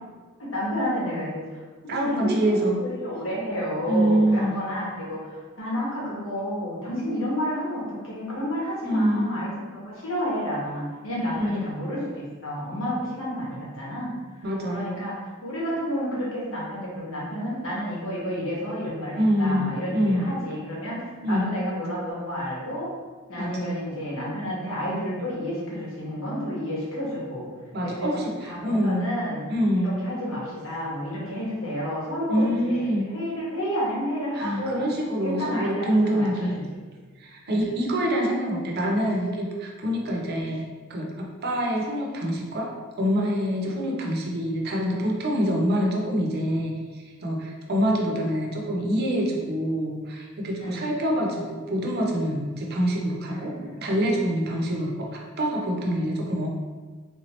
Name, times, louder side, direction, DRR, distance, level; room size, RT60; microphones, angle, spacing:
voice 1, 0.4-14.2 14.7-15.1 15.4-22.9 23.3-27.5 27.8-29.4 29.8-34.9 35.2-36.6 37.5-37.6 40.4-40.5 43.6-43.8 50.6-51.0 53.3-53.9 54.5-54.7 55.9-56.2, equal, 65° left, -6 dB, 1.2 m, -31 dB
voice 2, 1.9-2.8 3.9-4.6 8.8-9.3 11.3-11.6 14.4-14.9 19.2-20.2 21.2-21.5 23.4-23.6 27.7-29.1 29.5-30.0 32.3-33.0 34.3-36.6 37.2-46.8 47.2-53.6 53.8-56.5, equal, 50° right, -1 dB, 0.6 m, -25 dB
3.5 x 2.8 x 3.1 m, 1.4 s
head